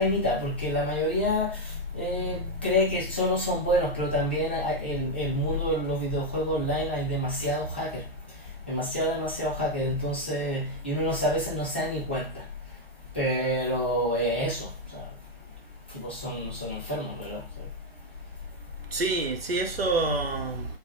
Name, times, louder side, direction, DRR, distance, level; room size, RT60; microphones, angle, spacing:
voice 1, 0.0-1.6 1.9-8.0 8.7-12.3 13.1-15.0 15.9-17.4, equal, 10° left, 0.3 m, -27 dB
voice 2, 1.7-2.6 2.9-3.3 18.9-20.8, right 3 dB, 80° right, 0.7 m, -29 dB
2.3 x 2.0 x 3.0 m
figure-of-eight pair, 135°, 30 cm